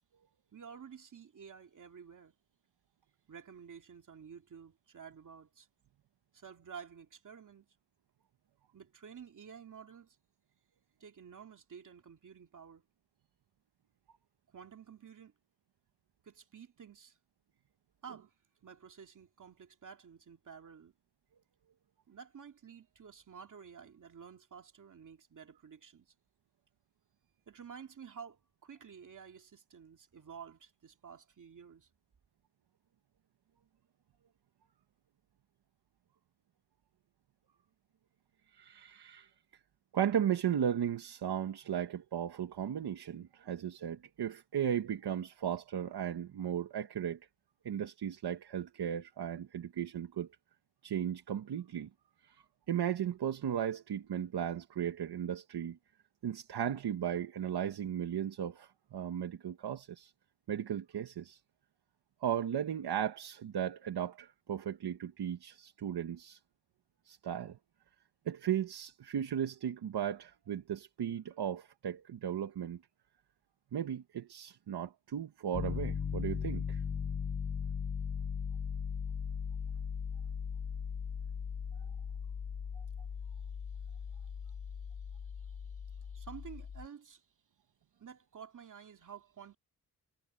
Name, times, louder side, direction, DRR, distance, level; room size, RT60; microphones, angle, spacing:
voice 1, 0.5-2.3 3.3-5.7 6.3-7.7 8.7-10.2 11.0-12.8 14.5-15.3 16.2-17.2 18.0-18.3 18.6-20.9 22.1-26.1 27.5-31.9 85.4-87.2 88.0-89.6, right 7 dB, 50° right, 2.5 m, -51 dB
voice 2, 38.5-39.3 39.9-47.2 47.6-50.3 50.8-51.9 52.2-55.8 56.2-60.1 60.5-61.4 62.2-66.4 67.0-67.6 68.2-72.8 73.7-76.8 82.7-82.8, right 9 dB, 80° right, 1.3 m, -36 dB
Piano, 75.5-86.9, left 6 dB, 30° left, 0.5 m, -38 dB
wide cardioid pair, 170°, 39 cm